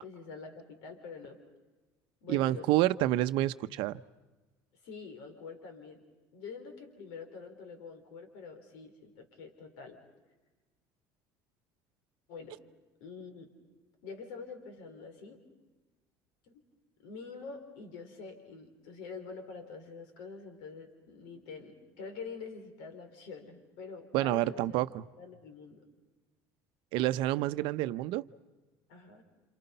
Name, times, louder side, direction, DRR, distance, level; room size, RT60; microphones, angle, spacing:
voice 1, 0.0-1.4 2.2-2.7 4.8-6.0 6.3-10.0 12.3-12.6 13.0-13.5 14.0-15.4 16.5-16.6 17.0-24.8 25.2-25.9 28.9-29.2, left 5 dB, 80° left, 6 dB, 4.0 m, -46 dB
voice 2, 2.3-4.0 24.1-25.0 26.9-28.2, right 15 dB, 70° right, 13 dB, 0.7 m, -28 dB
28.0 x 28.0 x 5.6 m, 1.2 s
supercardioid pair, 105°, 9 cm